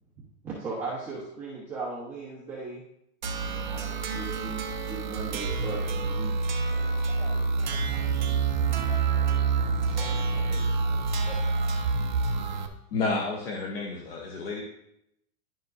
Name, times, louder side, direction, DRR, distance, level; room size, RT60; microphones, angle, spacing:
voice 1, 0.4-2.8 3.4-4.6 4.9-6.3 7.9-8.1, right 4 dB, 5° right, -10 dB, 0.9 m, -37 dB
sound 1, 3.2-12.7, right 4 dB, 35° right, 0.5 m, -27 dB
voice 2, 6.7-9.5 9.9-12.3, left 1 dB, 15° left, -4 dB, 2.7 m, -49 dB
voice 3, 12.9-14.6, left 3 dB, 40° left, 0 dB, 1.0 m, -30 dB
11.0 x 7.1 x 2.6 m, 0.78 s
supercardioid pair, 175°, 46 cm